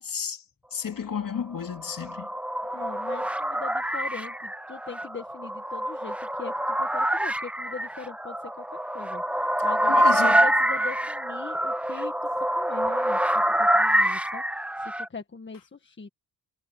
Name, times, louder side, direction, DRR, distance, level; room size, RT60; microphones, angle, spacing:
voice 1, 0.1-0.4 0.7-2.3 2.6-2.7 9.9-10.4, left 7 dB, 55° left, 3.2 m, -32 dB
sound 1, 1.6-15.1, equal, 5° right, 1.0 m, -26 dB
voice 2, 2.7-16.1, left 4 dB, 30° left, 1.6 m, -41 dB
wide cardioid pair, 110°, 39 cm